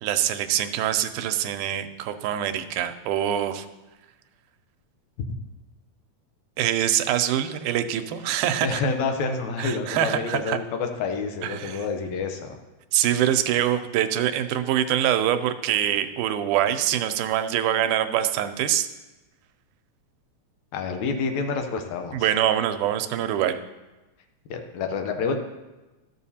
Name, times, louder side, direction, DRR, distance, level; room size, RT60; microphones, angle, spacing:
voice 1, 0.0-3.7 6.6-8.8 9.6-10.6 11.4-11.8 12.9-18.9 22.1-23.6, right 11 dB, 90° right, 10 dB, 2.1 m, -24 dB
voice 2, 8.6-12.6 20.7-22.2 24.5-25.4, left 4 dB, 75° left, 5 dB, 2.0 m, -28 dB
12.5 x 7.0 x 2.8 m, 1.1 s
omnidirectional pair, 3.5 m